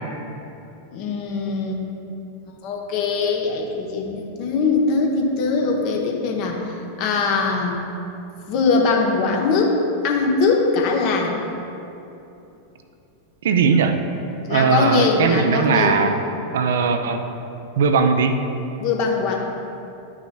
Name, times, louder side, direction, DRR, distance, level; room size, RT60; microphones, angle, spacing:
voice 1, 0.9-1.8 2.6-7.8 8.5-9.7 10.0-11.4 14.5-16.0 18.8-19.4, left 4 dB, 45° left, 0 dB, 1.0 m, -21 dB
voice 2, 13.4-14.0 14.5-16.2 16.5-17.2 17.8-18.4, right 5 dB, 60° right, 7 dB, 0.5 m, -19 dB
11.0 x 6.0 x 2.3 m, 2.9 s
figure-of-eight pair, 90°, 0 cm